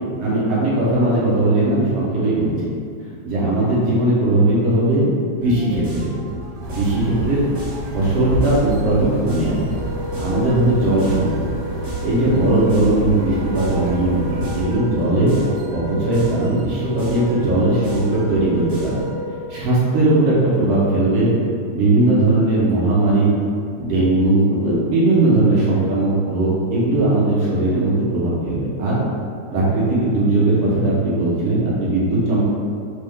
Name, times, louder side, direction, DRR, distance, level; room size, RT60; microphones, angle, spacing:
voice 1, 0.2-2.7 3.2-5.0 5.4-6.1 6.7-7.5 7.9-9.6 10.2-11.5 12.0-15.3 15.7-19.0 19.5-21.3 21.7-23.3 23.8-29.0 29.5-32.4, right 2 dB, 65° right, -8 dB, 1.5 m, -18 dB
sound 1, 5.4-19.1, right 1 dB, 45° right, 1.6 m, -35 dB
sound 2, 6.6-14.7, right 2 dB, 85° right, 2.2 m, -29 dB
Wind instrument woodwind instrument, 9.7-19.8, left 1 dB, 90° left, 1.3 m, -33 dB
5.4 x 2.4 x 3.5 m, 2.2 s
omnidirectional pair, 3.5 m